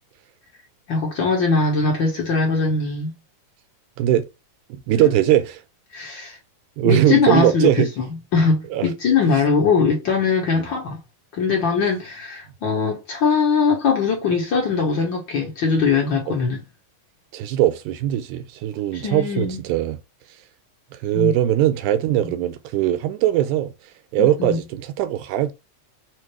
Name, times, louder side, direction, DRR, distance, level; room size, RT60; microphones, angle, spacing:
voice 1, 0.9-3.1 5.0-5.1 5.9-6.4 6.8-11.0 11.3-16.6 18.9-19.6 21.1-21.3 22.2-22.3 24.2-24.6, left 5 dB, 65° left, 1.1 m, -21 dB
voice 2, 4.7-5.6 6.8-7.9 8.7-8.9 10.6-10.7 16.3-16.4 17.3-20.0 20.9-23.7 24.1-25.5, right 12 dB, 80° right, 1.9 m, -20 dB
5.7 x 2.5 x 3.1 m
omnidirectional pair, 3.7 m